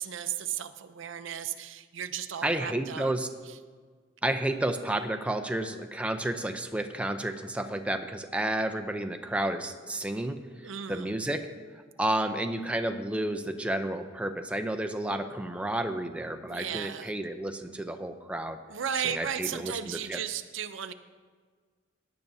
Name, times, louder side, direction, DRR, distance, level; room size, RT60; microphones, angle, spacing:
voice 1, 0.0-3.2 3.4-3.6 10.6-11.1 16.5-17.1 18.7-20.9, right 9 dB, 70° right, 10 dB, 0.6 m, -35 dB
voice 2, 2.4-3.3 4.2-10.4 10.9-11.4 12.0-18.6 19.1-19.7 20.1-20.2, right 1 dB, 5° right, 6 dB, 0.5 m, -31 dB
17.5 x 10.5 x 2.7 m, 1.5 s
head